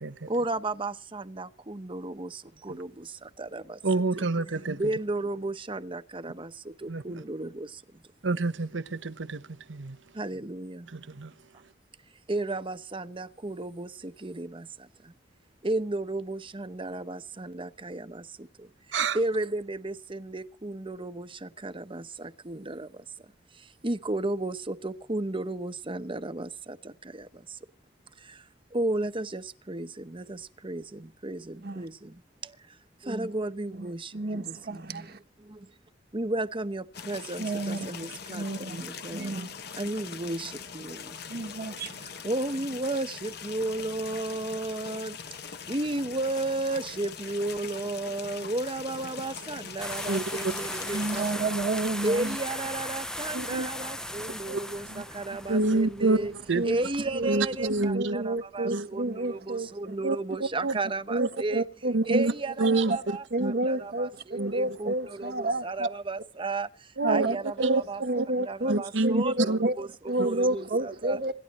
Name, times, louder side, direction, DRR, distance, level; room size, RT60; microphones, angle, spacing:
voice 1, 0.3-7.8 10.1-10.9 12.3-15.1 15.6-23.0 23.5-27.6 28.2-35.7 36.1-39.5 39.8-41.5 42.0-45.2 45.7-51.5 52.0-56.3 56.6-61.6 62.0-71.2, right 2 dB, 30° right, 1.0 m, -34 dB
voice 2, 3.8-4.8 6.9-7.0 8.2-9.4 9.7-10.0 10.9-11.3 18.9-19.2 50.1-50.5 53.3-53.7 54.5-54.6 55.5-56.2 56.5-56.6 57.3-58.2 58.6-58.9 60.0-60.2 60.6-60.7 61.2-61.3 61.9-62.3 62.6-63.5 64.3-64.5 67.0-67.3 67.6-67.8 68.2-68.3 68.7-69.7 70.2-70.3, right 3 dB, 85° right, 1.0 m, -27 dB
voice 3, 33.7-35.2 37.4-38.0 38.3-38.8 39.1-39.5 41.3-42.1 50.9-52.4 54.9-55.0 56.5-56.8 57.1-57.3 57.6-57.7 57.9-59.9 61.1-62.2 62.6-63.0 63.3-65.9 67.0-71.3, right 2 dB, 55° right, 1.4 m, -30 dB
sound 1, 36.9-51.3, left 6 dB, 60° left, 1.2 m, -42 dB
sound 2, 49.8-57.9, left 1 dB, 5° left, 0.6 m, -38 dB
27.0 x 12.5 x 3.1 m
head